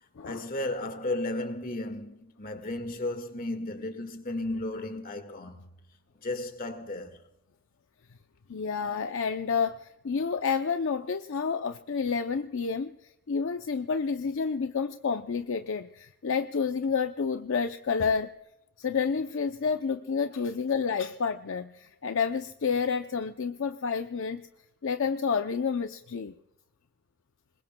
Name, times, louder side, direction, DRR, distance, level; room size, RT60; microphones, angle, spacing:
voice 1, 0.2-5.7 6.2-7.2, left 2 dB, 40° left, 1.7 m, -34 dB
voice 2, 8.5-12.9 13.3-18.3 18.8-24.5 24.8-26.3, left 5 dB, 60° left, 0.6 m, -29 dB
26.5 x 21.5 x 2.2 m
head